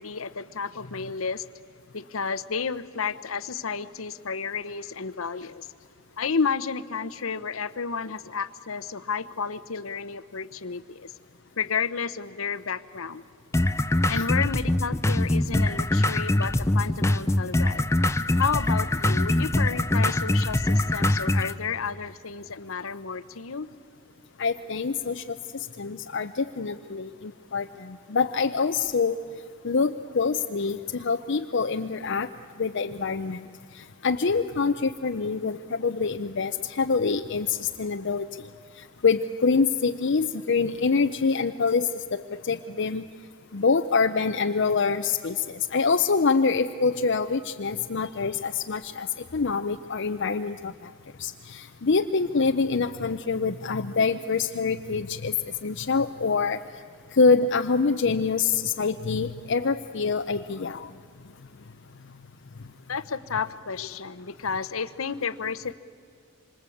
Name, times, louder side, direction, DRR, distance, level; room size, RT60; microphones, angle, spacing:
voice 1, 0.0-1.4 1.9-5.7 6.2-11.1 11.6-13.2 14.1-17.9 18.4-23.7 62.9-65.7, left 5 dB, 85° left, 13 dB, 0.9 m, -31 dB
sound 1, 13.5-21.5, left 1 dB, 15° left, 0.6 m, -23 dB
voice 2, 24.4-25.4 25.8-29.2 29.6-32.3 32.6-33.4 33.7-38.3 38.8-43.1 43.5-50.9 51.2-55.4 55.6-56.6 57.1-60.9, left 4 dB, 60° left, 6 dB, 0.7 m, -25 dB
27.0 x 25.5 x 8.6 m, 2.2 s
head